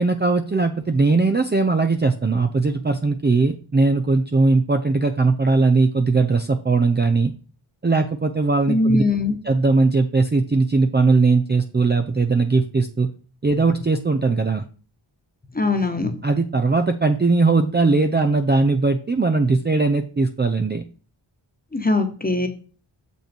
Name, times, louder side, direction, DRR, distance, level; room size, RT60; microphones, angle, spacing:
voice 1, 0.0-7.3 7.8-9.0 9.4-13.1 13.4-14.6 16.2-20.8, right 3 dB, 20° right, 6 dB, 0.6 m, -19 dB
voice 2, 8.7-9.4 15.5-16.1 21.7-22.5, left 2 dB, 20° left, 6 dB, 1.3 m, -21 dB
6.6 x 5.5 x 4.4 m, 0.38 s
wide cardioid pair, 65°, 49 cm